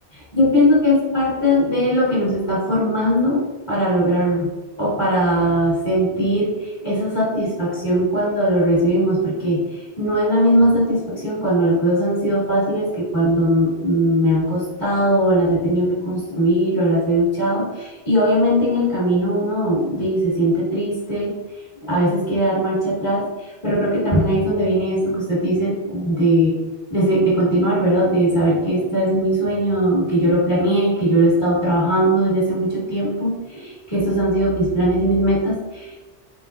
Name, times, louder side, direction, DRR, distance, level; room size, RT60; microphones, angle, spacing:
voice 1, 0.1-4.5 4.8-21.3 21.8-26.6 26.9-36.0, equal, 25° left, -9 dB, 1.4 m, -19 dB
4.6 x 3.8 x 2.4 m, 1.2 s
omnidirectional pair, 1.1 m